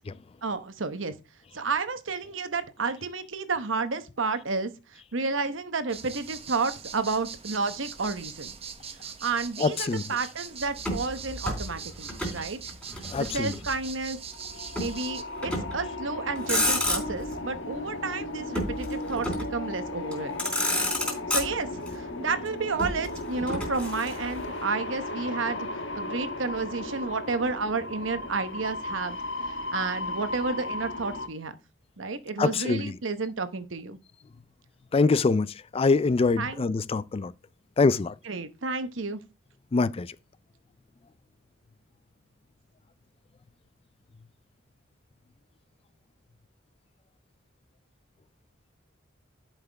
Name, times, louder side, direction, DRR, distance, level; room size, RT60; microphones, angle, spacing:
voice 1, 0.4-1.1 1.5-8.5 9.2-12.6 13.2-14.2 14.8-20.5 21.3-25.7 25.9-29.2 29.7-31.5 32.0-34.0 36.4-36.6 38.2-39.2, right 4 dB, 70° right, 1.0 m, -31 dB
sound 1, 5.9-15.2, right 7 dB, 30° right, 1.0 m, -42 dB
voice 2, 9.6-10.0 13.1-13.5 32.4-32.9 34.9-37.3 37.8-38.1 39.7-40.1, left 4 dB, 30° left, 0.4 m, -24 dB
Motor vehicle (road), 10.8-12.4 12.7-13.8 14.7-15.0 15.4-15.9 16.3-17.3 18.5-19.6 20.1-20.2 20.4-21.9 22.8-24.4, left 1 dB, 5° left, 3.7 m, -30 dB
sound 2, 14.2-31.3, left 2 dB, 65° left, 1.4 m, -36 dB
11.5 x 5.8 x 3.4 m
head